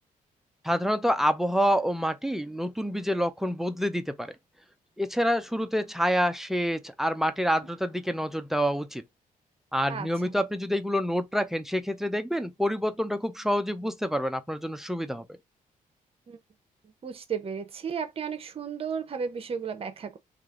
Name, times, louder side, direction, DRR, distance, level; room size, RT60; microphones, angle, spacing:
voice 1, 0.6-4.3 5.0-9.0 9.7-15.3, equal, ahead, 0.4 m, -27 dB
voice 2, 9.9-10.3 16.3-16.4 17.0-20.2, right 6 dB, 40° right, 0.7 m, -34 dB
3.2 x 2.4 x 3.7 m
cardioid pair, 135°, 15 cm